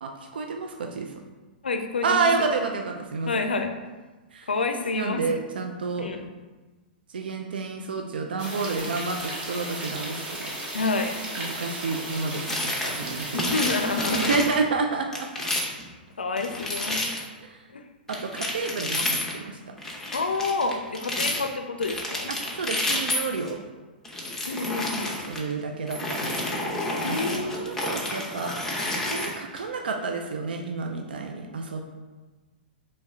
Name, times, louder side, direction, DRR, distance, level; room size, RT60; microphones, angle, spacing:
voice 1, 0.0-1.1 2.0-3.3 4.3-4.5 4.9-6.1 7.1-10.5 11.4-13.7 14.1-15.5 17.4-17.6 18.1-19.7 22.5-23.6 25.3-28.5 28.9-31.8, right 4 dB, 75° right, 3 dB, 0.4 m, -30 dB
voice 2, 1.6-2.3 3.3-3.7 4.5-5.2 6.0-6.2 10.7-11.2 13.3-14.3 16.2-17.0 17.7-17.8 20.1-22.3 24.5-25.2 27.0-27.7, left 3 dB, 85° left, 6 dB, 0.4 m, -28 dB
sound 1, 8.4-14.3, right 1 dB, 20° right, 1.1 m, -35 dB
sound 2, 12.5-13.1 13.4-14.6 15.1-15.8 16.4-17.2 18.1-19.4 19.8-21.4 21.8-23.5 24.0-25.4 25.9-29.6, left 1 dB, 5° left, 0.8 m, -30 dB
4.1 x 3.2 x 3.5 m, 1.3 s
figure-of-eight pair, 110°, 5 cm